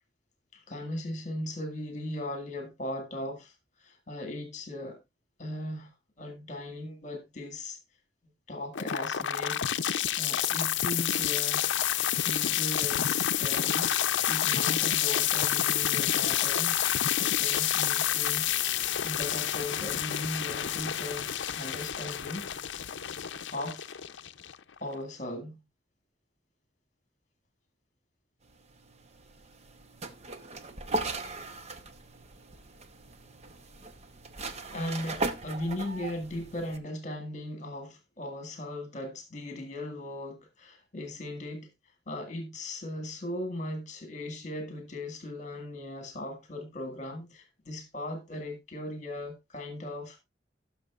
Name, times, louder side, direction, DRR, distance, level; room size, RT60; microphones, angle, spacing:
voice 1, 0.5-3.5 3.8-5.0 5.4-5.9 6.2-7.8 8.5-9.6 10.0-11.7 12.2-16.8 17.2-18.5 19.0-21.3 21.5-22.5 23.5-23.9 24.8-25.6 34.7-41.7 42.1-50.2, left 1 dB, 40° left, 1.9 m, -38 dB
sound 1, 8.7-24.8, left 11 dB, 75° left, 0.6 m, -29 dB
sound 2, 28.5-36.8, right 2 dB, 35° right, 0.9 m, -38 dB
17.5 x 6.4 x 2.4 m
head